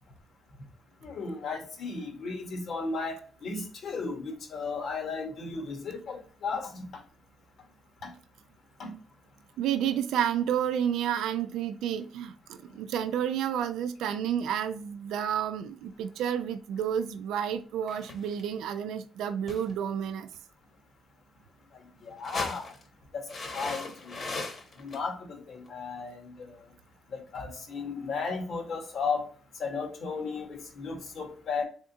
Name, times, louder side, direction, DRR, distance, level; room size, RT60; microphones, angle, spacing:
voice 1, 1.0-6.8 8.0-8.1 8.8-8.9 22.0-22.7 23.1-23.2 23.5-24.2 24.8-26.6 27.1-29.2 29.6-31.6, left 4 dB, 65° left, 1.3 m, -35 dB
voice 2, 9.6-12.3 12.7-20.3, right 9 dB, 85° right, 0.4 m, -30 dB
sound 1, 17.9-18.5 19.5-19.8 22.1-22.8 23.3-25.0 25.7-25.8, left 3 dB, 45° left, 1.2 m, -38 dB
3.5 x 3.5 x 2.7 m
cardioid pair, 90°, 0 cm